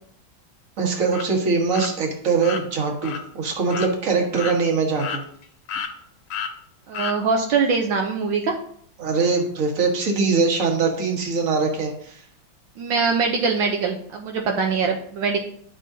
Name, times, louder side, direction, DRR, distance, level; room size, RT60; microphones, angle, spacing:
voice 1, 0.8-5.2 9.0-12.2, right 4 dB, 45° right, 1 dB, 1.6 m, -22 dB
sound 1, 1.1-1.3 1.7-1.9 2.4-2.6 3.0-3.2 3.7-3.9 4.4-4.6 5.0-5.4 5.7-5.9 6.3-6.5 6.9-7.2, left 7 dB, 90° left, 1.5 m, -30 dB
voice 2, 6.9-8.6 12.8-15.4, right 5 dB, 75° right, 1 dB, 1.4 m, -22 dB
10.5 x 6.4 x 2.7 m, 0.65 s
omnidirectional pair, 2.1 m